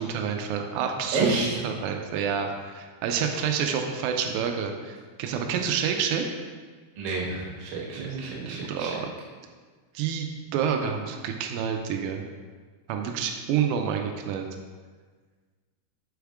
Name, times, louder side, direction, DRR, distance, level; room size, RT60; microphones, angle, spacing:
voice 1, 0.0-6.2 8.0-9.1 10.0-10.3 10.5-12.2 12.9-14.5, right 7 dB, 90° right, 3 dB, 3.1 m, -28 dB
voice 2, 1.1-1.7 7.0-8.9 9.9-10.0, right 3 dB, 65° right, -4 dB, 2.3 m, -30 dB
7.2 x 3.5 x 4.7 m, 1.5 s
omnidirectional pair, 5.6 m